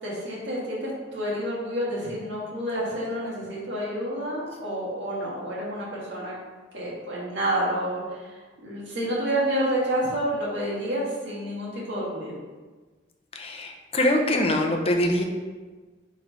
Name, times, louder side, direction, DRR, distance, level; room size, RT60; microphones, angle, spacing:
voice 1, 0.0-6.4 6.7-12.3, right 1 dB, 70° right, -6 dB, 2.0 m, -29 dB
voice 2, 13.3-15.2, left 1 dB, 35° left, 3 dB, 0.8 m, -23 dB
4.7 x 4.6 x 4.8 m, 1.3 s
head